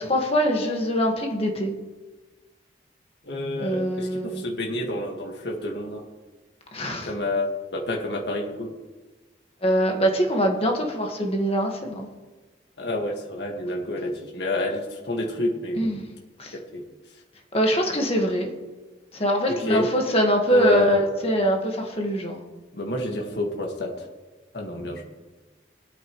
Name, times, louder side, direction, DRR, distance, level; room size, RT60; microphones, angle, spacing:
voice 1, 0.0-1.7 3.6-4.4 6.7-7.1 9.6-12.1 15.7-16.0 16.4-16.6 17.5-18.5 19.1-22.4, equal, 35° left, 2 dB, 1.6 m, -23 dB
voice 2, 3.2-6.0 7.0-8.7 12.8-15.9 16.5-16.8 19.5-19.9 20.5-21.0 22.7-24.1 24.5-25.0, left 1 dB, 70° left, 0 dB, 1.8 m, -29 dB
20.0 x 9.2 x 3.1 m, 1.3 s
head